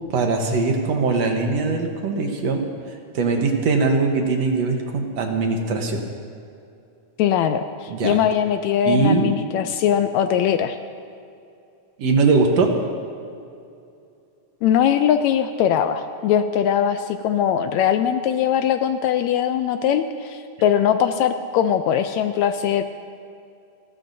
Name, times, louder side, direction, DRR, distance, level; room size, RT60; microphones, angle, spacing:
voice 1, 0.1-2.6 2.9-6.1 7.9-8.2 8.9-9.3 12.0-12.7, right 4 dB, 65° right, 3 dB, 2.1 m, -21 dB
voice 2, 7.2-10.8 14.6-22.8, left 9 dB, 80° left, 8 dB, 1.7 m, -21 dB
30.0 x 13.0 x 2.7 m, 2.5 s
omnidirectional pair, 3.5 m